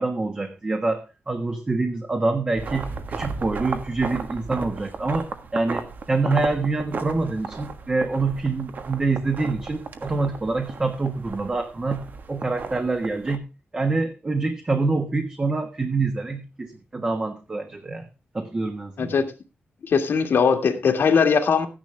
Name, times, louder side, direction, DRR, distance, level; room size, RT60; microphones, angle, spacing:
voice 1, 0.0-13.5 13.7-18.1 18.3-19.1, right 3 dB, 25° right, 5 dB, 1.4 m, -26 dB
sound 1, 2.6-13.4, right 4 dB, 50° right, 1.4 m, -35 dB
voice 2, 19.0-19.3 19.8-21.7, left 6 dB, 65° left, 7 dB, 1.9 m, -20 dB
14.0 x 10.5 x 3.4 m, 0.30 s
wide cardioid pair, 150°, 4 cm